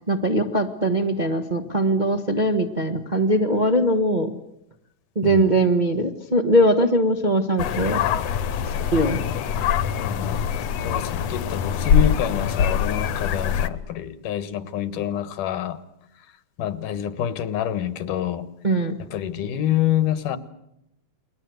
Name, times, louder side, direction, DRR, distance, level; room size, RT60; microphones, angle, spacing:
voice 1, 0.0-4.3 5.1-8.0 8.6-9.2 18.6-19.0, right 1 dB, 25° right, 0.9 m, -21 dB
sound 1, 7.6-13.7, left 8 dB, 65° left, 2.1 m, -23 dB
voice 2, 10.0-10.4 10.8-15.8 16.6-18.5 19.1-20.4, left 10 dB, 85° left, 3.0 m, -27 dB
29.5 x 22.5 x 8.0 m
omnidirectional pair, 3.6 m